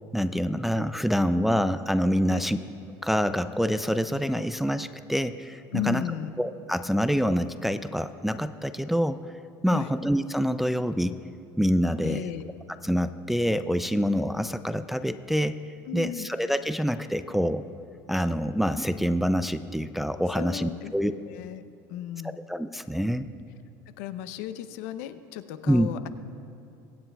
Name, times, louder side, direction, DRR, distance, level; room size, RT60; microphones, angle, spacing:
voice 1, 0.1-2.6 3.0-6.0 6.4-9.2 9.6-11.1 11.6-12.2 12.8-15.6 15.9-17.6 18.1-21.1 22.5-23.3 25.7-25.9, equal, ahead, 11 dB, 0.3 m, -26 dB
voice 2, 5.7-6.3 9.7-9.9 12.0-12.5 15.9-16.3 20.3-21.6 21.9-22.4 24.0-26.1, left 12 dB, 85° left, 12 dB, 0.6 m, -35 dB
23.5 x 9.5 x 2.3 m, 2.7 s
supercardioid pair, 110°, 9 cm